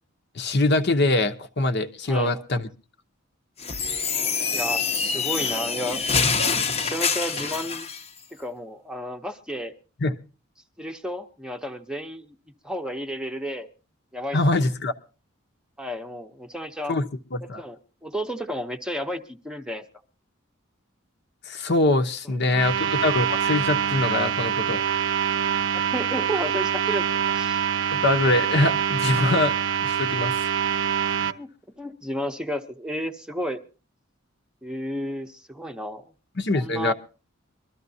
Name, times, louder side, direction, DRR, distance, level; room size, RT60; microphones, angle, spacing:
voice 1, 0.3-2.7 10.0-10.1 14.3-14.9 16.9-17.0 17.3-17.6 21.5-24.8 27.9-29.5 29.8-30.5 36.4-36.9, left 2 dB, 55° left, 7 dB, 0.9 m, -23 dB
voice 2, 2.1-2.4 4.5-6.0 6.8-7.9 8.3-9.7 10.8-12.4 12.6-13.7 14.1-14.6 15.8-17.0 17.6-19.8 22.2-22.7 25.7-27.6 31.2-31.5 31.8-33.6 34.6-36.0 36.5-36.9, equal, 5° right, 5 dB, 0.8 m, -32 dB
sound 1, 3.6-8.0, left 5 dB, 30° left, 0.8 m, -25 dB
sound 2, 22.5-31.3, right 8 dB, 65° right, 0.6 m, -25 dB
23.5 x 13.0 x 2.7 m, 0.35 s
head